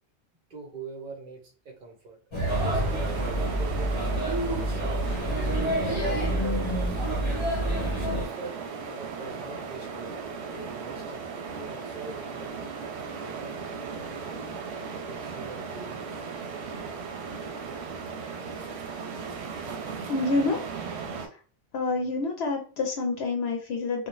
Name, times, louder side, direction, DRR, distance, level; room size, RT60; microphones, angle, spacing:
voice 1, 0.5-4.1 4.6-7.0 7.8-8.6 8.9-10.2 10.5-12.5 13.2-13.6 13.9-14.6 15.1-16.3, right 3 dB, 50° right, 1 dB, 0.9 m, -43 dB
Male speech man speaking / Child speech kid speaking / Chatter, 2.3-8.3, right 1 dB, 30° left, 0.8 m, -27 dB
sound 1, 2.5-21.3, right 5 dB, 85° right, 0.9 m, -37 dB
voice 2, 20.1-20.6 21.3-21.4 21.7-24.1, left 3 dB, 70° left, 1 dB, 0.8 m, -27 dB
2.4 x 2.2 x 3.0 m, 0.40 s
omnidirectional pair, 1.1 m